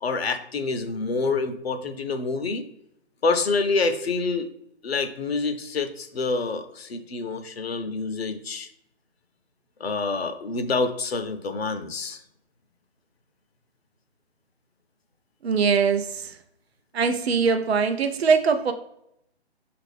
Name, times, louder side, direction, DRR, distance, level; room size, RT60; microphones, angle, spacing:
voice 1, 0.0-2.7 3.2-4.5 4.8-8.7 9.8-12.2, left 4 dB, 65° left, 8 dB, 0.7 m, -27 dB
voice 2, 15.4-16.4 16.9-18.7, right 5 dB, 65° right, 8 dB, 0.6 m, -22 dB
5.7 x 2.5 x 3.3 m, 0.76 s
figure-of-eight pair, 145°, 33 cm